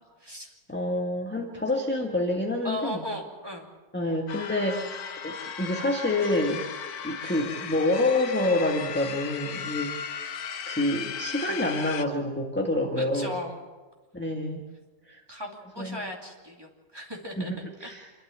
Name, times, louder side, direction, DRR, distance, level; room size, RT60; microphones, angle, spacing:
voice 1, 0.0-0.5 1.5-1.6 2.6-3.7 13.0-13.6 15.3-17.5 17.8-17.9, left 1 dB, 15° right, 0 dB, 2.6 m, -37 dB
voice 2, 0.7-3.0 3.9-5.0 5.2-6.6 7.0-10.0 10.7-13.3 14.1-14.7 15.1-15.2 15.8-16.0 17.4-18.1, left 1 dB, 5° left, 0 dB, 1.5 m, -27 dB
sound 1, 4.3-12.1, left 7 dB, 65° left, 1.3 m, -36 dB
27.0 x 12.5 x 8.1 m, 1.3 s
omnidirectional pair, 1.9 m